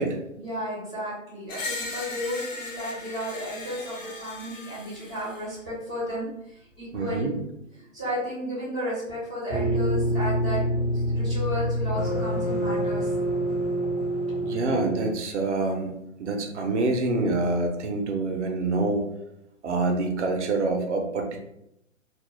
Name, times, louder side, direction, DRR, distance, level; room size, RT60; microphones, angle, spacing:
voice 1, 0.3-7.4 7.9-10.6 10.9-13.1, equal, 10° left, -13 dB, 0.4 m, -33 dB
Screech, 1.5-5.5, left 3 dB, 75° left, 0.8 m, -37 dB
voice 2, 6.9-7.3 14.4-15.9 16.2-19.1 19.6-21.4, right 3 dB, 60° right, 4 dB, 0.6 m, -26 dB
sound 1, 9.5-15.1, equal, 40° left, 0.9 m, -26 dB
2.4 x 2.0 x 2.9 m, 0.81 s
figure-of-eight pair, 130°, 39 cm